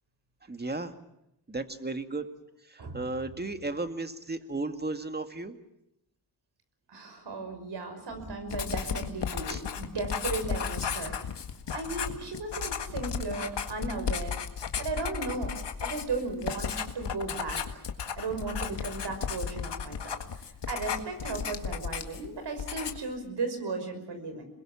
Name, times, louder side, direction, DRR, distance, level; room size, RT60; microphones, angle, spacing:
voice 1, 0.5-0.9 1.5-2.3 2.7-5.6 9.5-9.6, right 2 dB, 25° right, 8 dB, 2.2 m, -34 dB
voice 2, 6.9-11.4 11.7-14.4 14.8-15.5 15.8-17.8 18.2-20.2 20.7-24.4, right 3 dB, 75° right, 7 dB, 5.8 m, -36 dB
Writing, 8.5-22.3 22.6-23.1, left 7 dB, 85° left, 1.9 m, -34 dB
27.0 x 21.5 x 7.4 m, 0.82 s
cardioid pair, 75°, 41 cm